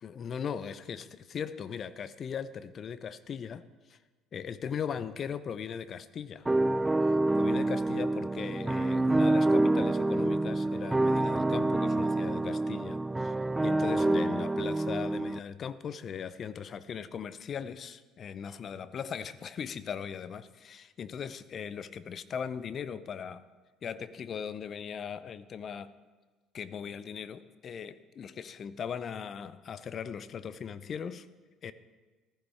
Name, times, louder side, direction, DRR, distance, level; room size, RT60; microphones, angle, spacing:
voice 1, 0.0-4.0 4.3-6.5 7.4-13.3 13.6-23.4 23.8-25.9 26.5-31.3 31.6-31.7, left 7 dB, 45° left, 15 dB, 0.6 m, -39 dB
sound 1, 6.5-15.4, right 2 dB, 10° right, 0.3 m, -27 dB
15.0 x 13.5 x 3.6 m, 1.3 s
hypercardioid pair, 60°, 0 cm